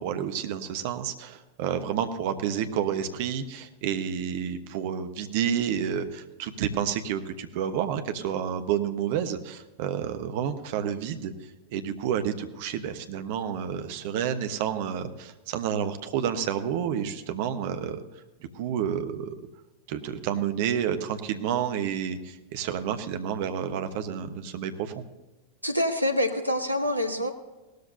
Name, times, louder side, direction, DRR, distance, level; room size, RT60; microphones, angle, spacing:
voice 1, 0.0-11.3 11.7-18.0 18.5-19.3 19.9-25.1, right 8 dB, 50° right, 9 dB, 1.1 m, -30 dB
voice 2, 25.6-27.3, left 1 dB, 85° right, 6 dB, 1.3 m, -26 dB
18.0 x 13.0 x 2.7 m, 1.1 s
figure-of-eight pair, 90°, 0 cm